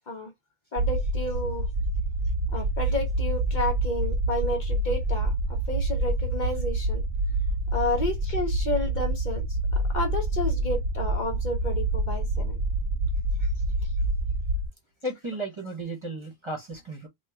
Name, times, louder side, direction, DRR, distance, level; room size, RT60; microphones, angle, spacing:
voice 1, 0.7-1.7 2.5-5.3 5.7-7.0 7.7-9.5 9.7-12.6, left 1 dB, 50° left, 0.9 m, -31 dB
sound 1, 0.8-14.7, right 1 dB, 60° right, 0.7 m, -27 dB
voice 2, 15.0-17.1, right 1 dB, 30° right, 0.8 m, -34 dB
3.0 x 2.2 x 3.4 m
omnidirectional pair, 1.0 m